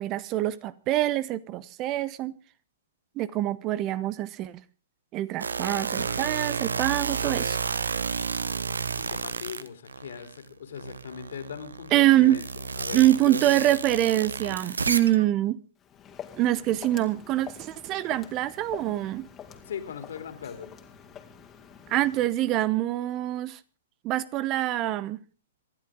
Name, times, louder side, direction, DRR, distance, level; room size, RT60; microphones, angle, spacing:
voice 1, 0.0-2.3 3.2-4.5 5.1-7.6 11.9-12.4 12.9-15.6 16.4-19.3 21.9-23.6 24.0-25.2, right 14 dB, 30° right, 0.9 m, -25 dB
sound 1, 5.4-10.4 10.8-15.2, right 5 dB, 80° right, 1.2 m, -31 dB
voice 2, 8.9-14.1 19.6-20.7, left 7 dB, 65° left, 3.4 m, -40 dB
Walk footsteps, 15.8-22.4, left 8 dB, 20° left, 2.5 m, -46 dB
26.5 x 11.5 x 3.7 m
figure-of-eight pair, 115°, 0 cm